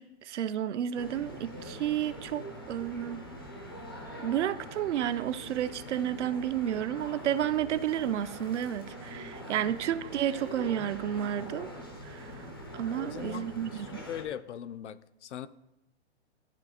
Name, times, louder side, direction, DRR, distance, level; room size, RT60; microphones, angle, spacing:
voice 1, 0.0-3.2 4.2-11.7 12.0-12.5 12.7-13.9, right 10 dB, 75° right, 0.5 m, -31 dB
sound 1, 0.9-14.2, equal, 20° left, 0.4 m, -43 dB
voice 2, 12.9-15.5, left 9 dB, 75° left, 0.5 m, -40 dB
12.0 x 4.0 x 2.8 m
hypercardioid pair, 175°, 35 cm